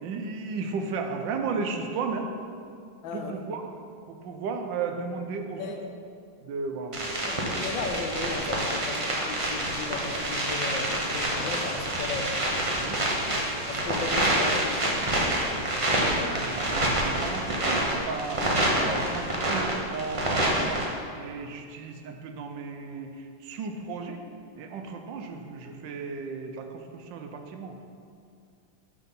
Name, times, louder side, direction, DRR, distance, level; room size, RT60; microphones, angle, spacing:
voice 1, 0.0-2.3 3.1-3.6 4.1-5.6 6.4-7.0 8.8-9.0 12.8-13.0 16.2-18.5 18.8-19.2 19.5-20.9 21.2-24.2 24.6-27.8, right 4 dB, 75° right, 5 dB, 1.3 m, -34 dB
voice 2, 3.0-3.3 5.6-5.8 7.2-12.3 13.7-15.0 18.8-19.1, left 4 dB, 75° left, 4 dB, 1.4 m, -35 dB
sound 1, 6.9-20.9, right 1 dB, 35° right, 0.5 m, -27 dB
6.0 x 5.6 x 5.4 m, 2.3 s
omnidirectional pair, 2.1 m